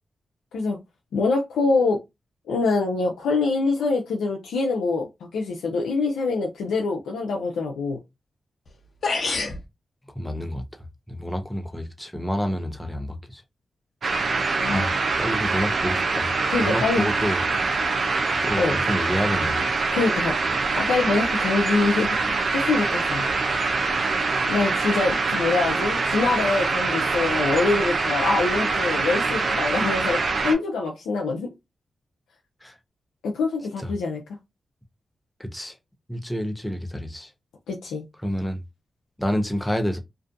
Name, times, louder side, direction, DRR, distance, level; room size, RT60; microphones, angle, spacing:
voice 1, 1.1-2.0 2.5-8.0 14.6-14.9 16.5-17.1 18.6-18.8 19.9-23.2 24.5-31.5 33.2-34.2 37.7-38.0, left 3 dB, 90° left, 0.4 m, -25 dB
sound 1, 8.7-8.8 9.0-9.6, left 3 dB, 65° left, 0.8 m, -25 dB
voice 2, 10.1-10.6 11.1-13.4 14.7-16.3 16.6-17.4 18.4-19.6 32.6-32.7 33.8-33.9 35.4-35.7 36.1-37.3 38.2-38.6 39.2-40.0, equal, 10° left, 0.7 m, -28 dB
sound 2, 14.0-30.5, right 4 dB, 65° right, 0.6 m, -24 dB
2.5 x 2.3 x 2.5 m
supercardioid pair, 40°, 0 cm